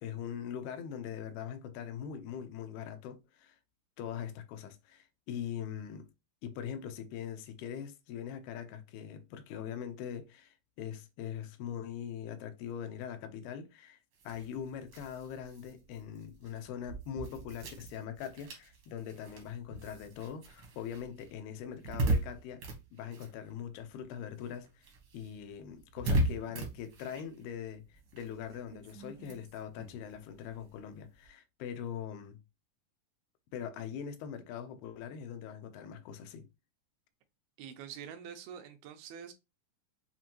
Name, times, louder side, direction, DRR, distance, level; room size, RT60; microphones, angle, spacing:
voice 1, 0.0-3.6 4.0-6.1 6.4-14.0 14.2-22.6 22.9-32.4 33.5-36.5, left 8 dB, 90° left, 2.6 m, -42 dB
sound 1, 14.1-24.0 24.3-31.3, right 1 dB, 70° right, 1.2 m, -38 dB
voice 2, 37.6-39.3, right 8 dB, 90° right, 2.6 m, -46 dB
7.2 x 2.5 x 2.9 m
omnidirectional pair, 4.3 m